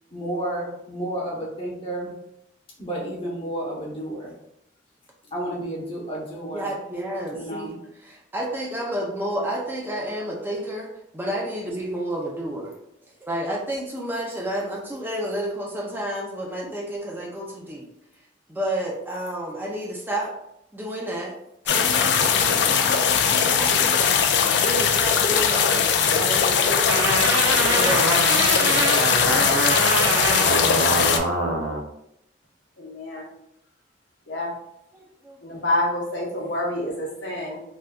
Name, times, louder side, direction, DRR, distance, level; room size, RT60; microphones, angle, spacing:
voice 1, 0.1-2.1 2.8-4.3 5.3-6.7 7.3-7.7, right 1 dB, 30° left, -4 dB, 0.9 m, -31 dB
voice 2, 6.5-12.7 13.2-17.8 18.5-20.3 20.7-21.3 21.6-24.0 24.4-25.7 26.1-29.0 35.2-35.6, right 1 dB, 10° right, -2 dB, 0.4 m, -31 dB
sound 1, 21.7-31.2, left 7 dB, 60° left, 0.3 m, -20 dB
sound 2, 26.9-31.8, right 2 dB, 75° right, 0.5 m, -24 dB
voice 3, 32.8-33.2 34.3-34.5 35.4-37.6, left 1 dB, 75° left, -3 dB, 0.9 m, -27 dB
3.5 x 2.6 x 2.3 m, 0.80 s
head